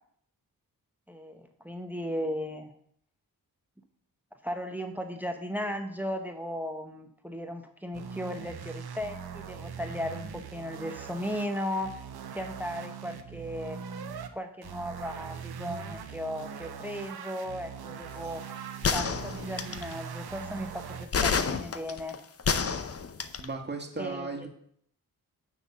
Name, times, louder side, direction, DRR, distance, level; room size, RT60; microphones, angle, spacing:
voice 1, 1.1-2.7 4.4-12.0 12.3-13.8 14.3-18.4 18.9-22.2 24.0-24.5, equal, 5° right, 5 dB, 1.0 m, -36 dB
sound 1, 7.9-14.3 14.6-21.1, right 7 dB, 75° right, 0.8 m, -41 dB
sound 2, 18.8-19.9 21.1-23.5, left 5 dB, 35° left, 0.7 m, -28 dB
voice 2, 23.4-24.5, right 3 dB, 25° right, 2 dB, 1.8 m, -35 dB
8.8 x 3.7 x 6.7 m, 0.65 s
cardioid pair, 50°, 39 cm